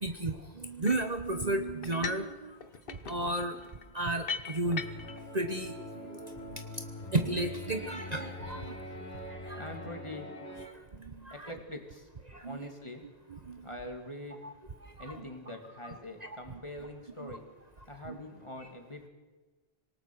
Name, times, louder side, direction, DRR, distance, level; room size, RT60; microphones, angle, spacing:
voice 1, 0.0-2.6 2.9-3.5 3.9-4.8 5.3-5.7 6.0-6.6 7.1-8.7 9.4-9.7 11.0-11.5 12.3-12.7 13.3-13.7 14.4-14.5 14.8-15.3 15.8-16.6 17.2-17.4 18.0-18.2, right 2 dB, 40° right, 7 dB, 1.2 m, -34 dB
sound 1, 0.8-1.2 1.8-2.3 2.6-5.2, left 6 dB, 55° left, 1.1 m, -40 dB
sound 2, 4.6-10.7, left 1 dB, 85° left, 3.6 m, -43 dB
voice 2, 9.5-10.3 11.3-12.1 12.4-13.0 13.6-14.4 15.0-17.4 17.9-19.1, left 1 dB, 25° left, 4 dB, 2.8 m, -43 dB
26.0 x 18.5 x 6.3 m, 1.2 s
omnidirectional pair, 1.1 m